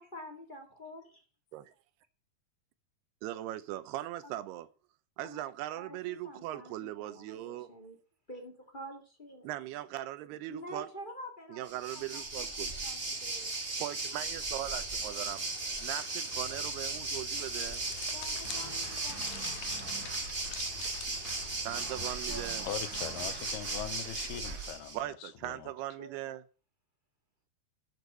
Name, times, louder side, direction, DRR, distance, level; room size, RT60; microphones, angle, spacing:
voice 1, 0.0-1.2 4.2-4.3 5.2-5.4 5.8-8.0 8.3-9.5 10.5-11.6 11.9-13.5 18.1-19.7 22.3-22.7 26.0-26.4, equal, 25° left, 1.1 m, -48 dB
voice 2, 3.2-4.7 5.2-7.7 9.4-10.9 11.5-12.7 13.8-15.4 15.8-17.8 21.6-22.7 24.9-26.4, right 14 dB, 85° right, 2.8 m, -39 dB
Waves surf, 11.6-25.0, right 3 dB, 30° right, 1.1 m, -37 dB
sound 1, 16.3-22.2, left 9 dB, 70° left, 2.5 m, -47 dB
sound 2, 18.4-24.8, right 6 dB, 50° right, 2.4 m, -49 dB
voice 3, 22.6-25.7, left 10 dB, 85° left, 2.9 m, -41 dB
12.5 x 6.5 x 6.6 m
omnidirectional pair, 4.5 m